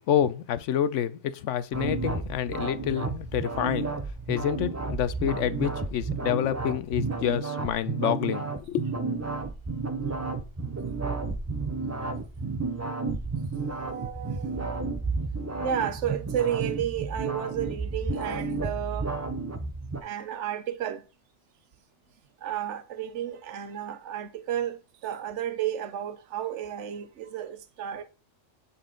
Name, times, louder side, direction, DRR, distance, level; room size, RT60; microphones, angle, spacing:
voice 1, 0.1-3.9 4.3-8.9, left 10 dB, 85° left, 1.0 m, -28 dB
sound 1, 1.7-20.0, right 3 dB, 20° right, 0.5 m, -32 dB
voice 2, 13.8-14.9 15.6-19.2 20.0-21.1 22.4-28.0, right 10 dB, 75° right, 1.1 m, -32 dB
7.9 x 4.2 x 3.8 m
omnidirectional pair, 1.2 m